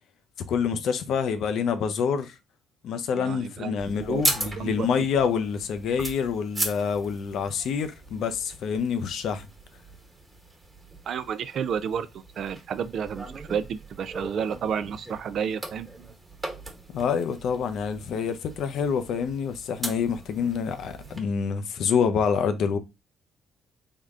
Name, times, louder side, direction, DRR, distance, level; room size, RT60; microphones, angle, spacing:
voice 1, 0.5-2.3 2.8-9.5 16.9-22.8, left 6 dB, 70° left, 0.5 m, -27 dB
voice 2, 3.1-3.7 4.1-4.2 4.6-4.9 11.1-15.9, right 7 dB, 65° right, 0.4 m, -31 dB
sound 1, 3.8-21.2, right 2 dB, 20° right, 1.3 m, -38 dB
3.7 x 2.1 x 3.6 m
supercardioid pair, 70°, 0 cm